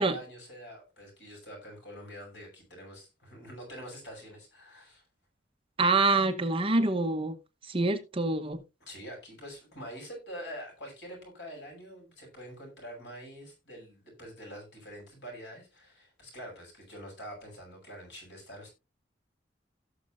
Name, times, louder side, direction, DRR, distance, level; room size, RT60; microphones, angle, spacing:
voice 1, 0.0-5.0 8.9-18.7, equal, 80° left, 6.6 m, -45 dB
voice 2, 5.8-7.3 7.7-8.6, right 2 dB, 30° right, 1.0 m, -26 dB
17.5 x 6.5 x 2.5 m
head